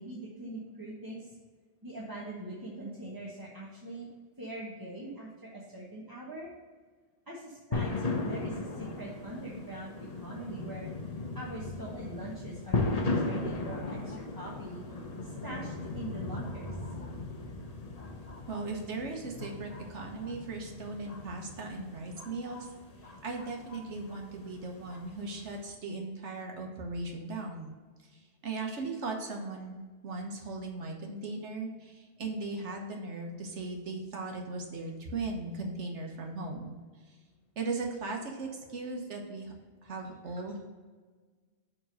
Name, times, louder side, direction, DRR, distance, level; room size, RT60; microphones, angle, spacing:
voice 1, 0.0-1.4 1.8-4.1 4.4-6.5 7.3-10.9 11.3-14.8 15.2-16.7, right 1 dB, 20° right, -6 dB, 1.1 m, -43 dB
sound 1, 7.7-25.7, left 3 dB, 35° left, 0.9 m, -37 dB
voice 2, 18.5-22.7 23.0-27.7 28.1-36.8 37.6-39.5 39.8-40.6, right 3 dB, 85° right, 2 dB, 1.5 m, -38 dB
7.1 x 3.8 x 6.3 m, 1.4 s
omnidirectional pair, 1.2 m